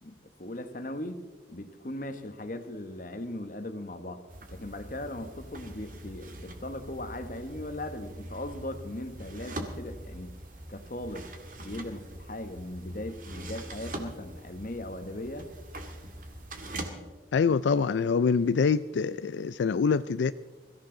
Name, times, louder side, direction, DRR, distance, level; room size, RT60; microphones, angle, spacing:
voice 1, 0.0-1.2 1.5-4.2 4.5-10.3 10.7-11.3 11.6-15.5, left 1 dB, 45° left, 8 dB, 1.2 m, -38 dB
sound 1, 4.3-16.9, right 1 dB, 45° right, 1.8 m, -43 dB
voice 2, 17.3-20.3, left 5 dB, 90° left, 14 dB, 0.4 m, -25 dB
22.5 x 14.0 x 3.9 m, 1.3 s
head